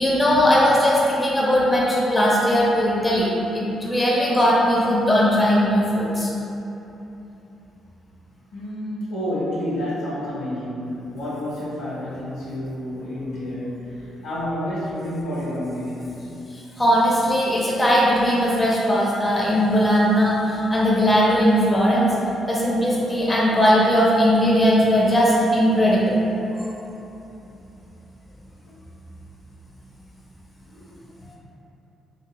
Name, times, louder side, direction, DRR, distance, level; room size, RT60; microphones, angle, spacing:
voice 1, 0.0-6.3 16.8-22.1 22.5-26.1, equal, 20° left, -5 dB, 0.5 m, -19 dB
voice 2, 8.5-13.8 14.2-16.3, left 1 dB, 90° left, -9 dB, 1.2 m, -29 dB
2.6 x 2.6 x 2.9 m, 3.0 s
cardioid pair, 90°, 0 cm